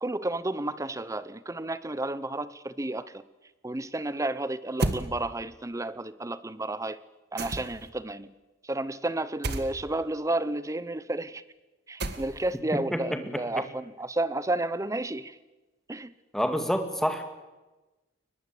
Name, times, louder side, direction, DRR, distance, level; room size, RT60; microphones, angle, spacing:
voice 1, 0.0-3.2 3.6-7.0 7.3-8.3 8.7-11.4 11.9-15.3 15.9-16.1, right 2 dB, 15° right, 16 dB, 0.7 m, -31 dB
sound 1, 4.8-5.1 7.4-7.9 9.4-9.7 12.0-12.5, right 2 dB, 55° right, 1.8 m, -30 dB
voice 2, 12.7-13.0 16.3-17.2, equal, ahead, 7 dB, 2.1 m, -27 dB
22.5 x 20.5 x 8.2 m, 1.1 s
head